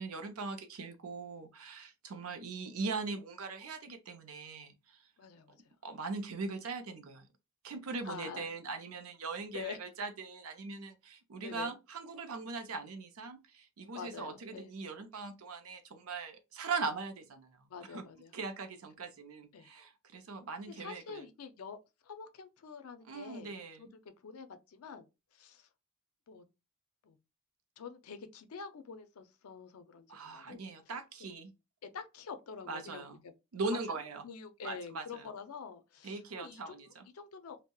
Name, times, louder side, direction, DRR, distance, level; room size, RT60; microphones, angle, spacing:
voice 1, 0.0-5.0 5.8-7.3 7.6-17.5 17.9-18.0 18.3-21.2 23.1-23.8 30.1-31.5 32.7-33.2 33.5-34.2 34.6-35.3 36.0-37.1, right 4 dB, 75° right, 0.5 m, -40 dB
voice 2, 5.2-5.7 8.0-8.5 9.5-9.8 11.4-11.7 13.9-14.7 17.7-18.3 19.5-19.7 20.7-21.8 22.0-25.1 25.3-25.7 26.3-26.4 27.0-27.2 27.8-30.7 31.8-33.3 33.6-33.8 34.2-37.6, left 6 dB, 80° left, 0.4 m, -47 dB
2.7 x 2.1 x 2.2 m
head